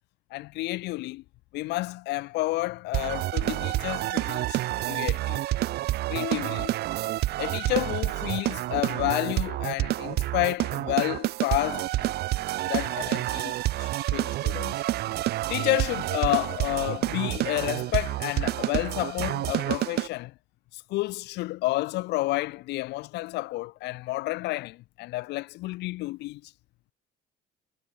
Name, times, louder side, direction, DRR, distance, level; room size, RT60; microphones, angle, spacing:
voice 1, 0.3-1.2 1.5-5.4 6.1-6.8 7.4-12.1 12.7-13.5 13.8-14.8 15.5-20.3 20.7-26.5, left 19 dB, 85° left, 2.2 m, -30 dB
sound 1, 2.9-20.1, right 16 dB, 75° right, 1.0 m, -28 dB
cardioid pair, 110°, 17 cm